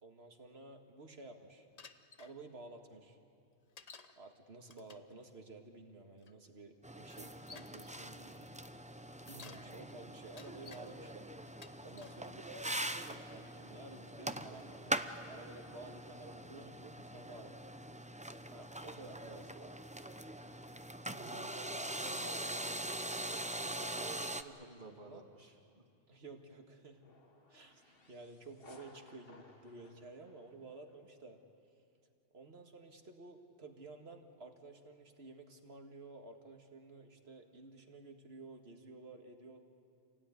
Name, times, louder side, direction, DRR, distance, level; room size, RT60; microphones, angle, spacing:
voice 1, 0.0-1.7 2.2-3.2 4.2-7.9 9.2-11.3 11.8-17.7 18.5-19.7 21.1-25.2 26.1-27.0 27.5-31.4 32.3-39.6, right 3 dB, 70° right, 4 dB, 2.0 m, -53 dB
Bicycle, 1.8-2.3 3.8-4.2 4.6-5.1 6.2-6.3 7.1-7.8 9.1-9.7 10.2-10.8 11.5-12.2 12.8-13.2, left 5 dB, 40° left, 0.8 m, -55 dB
sound 1, 6.8-24.4, right 1 dB, 10° right, 0.5 m, -43 dB
voice 2, 7.2-8.6 12.3-12.5 18.7-19.3 24.6-25.8, right 2 dB, 45° right, 2 dB, 2.5 m, -58 dB
sound 2, 27.0-31.1, left 3 dB, 60° left, 1.8 m, -61 dB
27.5 x 18.0 x 9.7 m, 2.6 s
omnidirectional pair, 1.1 m